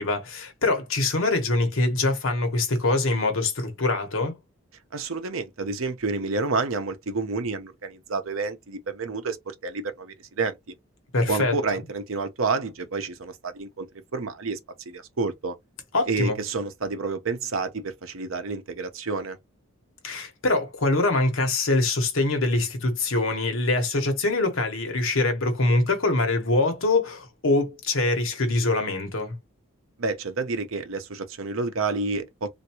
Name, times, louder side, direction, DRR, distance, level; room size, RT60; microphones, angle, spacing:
voice 1, 0.0-4.4 11.1-11.5 15.9-16.4 20.0-29.4, left 2 dB, 65° left, 1.1 m, -24 dB
voice 2, 4.9-10.7 11.3-13.9 14.1-14.6 14.9-15.6 16.1-19.4 30.0-32.5, right 4 dB, 70° right, 0.7 m, -29 dB
3.5 x 2.6 x 2.8 m
head